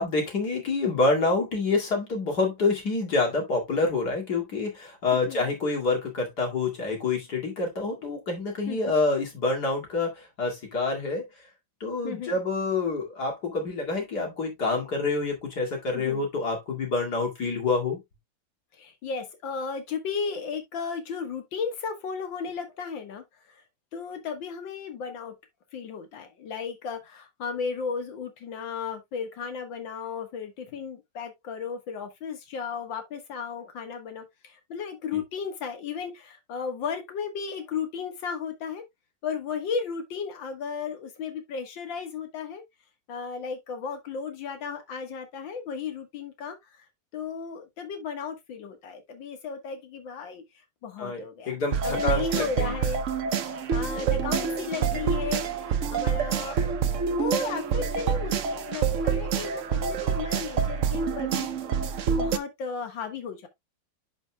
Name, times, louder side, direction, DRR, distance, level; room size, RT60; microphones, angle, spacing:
voice 1, 0.0-11.3 11.8-18.0 35.1-35.2 51.0-52.8, left 3 dB, 55° left, 2.8 m, -27 dB
voice 2, 12.0-12.4 15.9-16.2 18.8-23.2 23.9-25.3 25.7-38.8 39.2-42.6 43.1-46.6 47.1-50.4 50.8-51.5 51.8-53.0 53.7-61.5 62.1-63.5, left 5 dB, 75° left, 2.1 m, -34 dB
sound 1, 51.7-62.4, right 7 dB, 60° right, 0.8 m, -27 dB
11.0 x 5.2 x 2.2 m
omnidirectional pair, 2.1 m